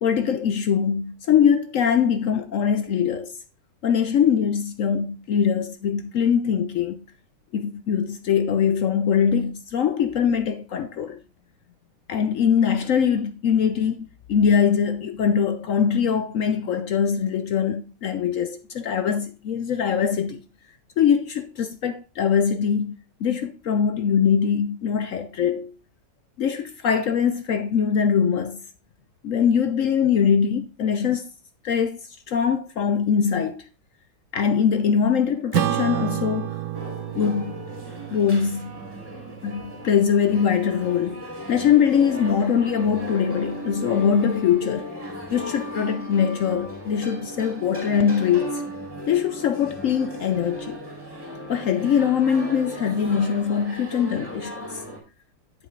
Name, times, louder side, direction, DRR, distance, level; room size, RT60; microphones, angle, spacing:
voice 1, 0.0-3.3 3.8-7.0 7.5-11.2 12.1-20.4 21.0-22.9 23.2-25.7 26.4-28.6 29.2-31.2 31.6-32.0 32.3-33.6 34.3-36.6 36.8-37.5 38.1-38.8 39.4-44.9 45.3-48.7 49.1-50.8 51.5-54.8, left 7 dB, 65° left, 0.8 m, -22 dB
Acoustic guitar / Strum, 35.5-40.3, right 12 dB, 80° right, 1.3 m, -30 dB
sound 1, 36.7-55.0, left 1 dB, 15° right, 2.4 m, -36 dB
8.5 x 7.1 x 3.1 m
omnidirectional pair, 1.9 m